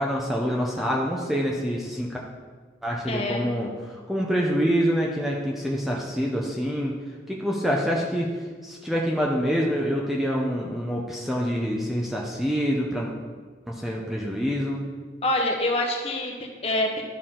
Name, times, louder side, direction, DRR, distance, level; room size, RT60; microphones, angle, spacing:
voice 1, 0.0-2.2 2.8-7.0 7.3-8.3 8.6-13.1 13.7-14.8, equal, ahead, -3 dB, 0.6 m, -26 dB
voice 2, 3.1-3.5 15.2-17.0, left 1 dB, 35° left, 1 dB, 0.9 m, -26 dB
12.0 x 4.5 x 3.7 m, 1.5 s
head